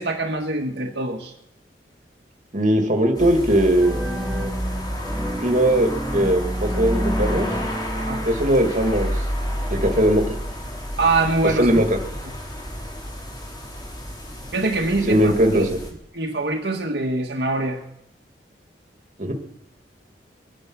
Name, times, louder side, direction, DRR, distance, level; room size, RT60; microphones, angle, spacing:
voice 1, 0.0-1.3 8.0-8.2 11.0-11.7 14.5-15.7 16.1-17.8, right 2 dB, 70° right, 1 dB, 1.8 m, -24 dB
voice 2, 2.5-4.0 5.4-7.5 8.3-9.1 9.7-10.3 11.6-12.0 15.1-15.6 19.2-19.3, right 1 dB, 45° right, 3 dB, 2.2 m, -19 dB
sound 1, 3.1-15.9, equal, 25° left, 3.5 m, -30 dB
sound 2, 3.8-8.7, equal, 5° right, 3.5 m, -30 dB
22.0 x 10.5 x 6.2 m, 0.77 s
head